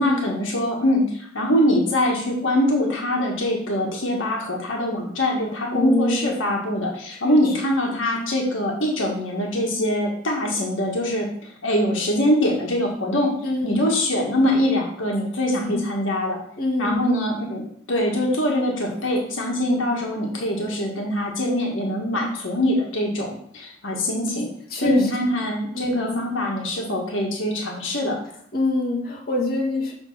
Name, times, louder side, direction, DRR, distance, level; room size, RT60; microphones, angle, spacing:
voice 1, 0.0-13.3 13.6-16.4 16.8-17.6 17.9-24.5 24.7-28.2, left 1 dB, 85° left, -1 dB, 1.6 m, -23 dB
voice 2, 5.7-6.3 7.1-7.5 13.4-13.8 15.5-15.8 16.6-17.1 24.7-25.1 25.7-26.2 28.5-29.9, left 2 dB, 50° left, -3 dB, 1.6 m, -25 dB
7.0 x 3.6 x 5.5 m, 0.65 s
head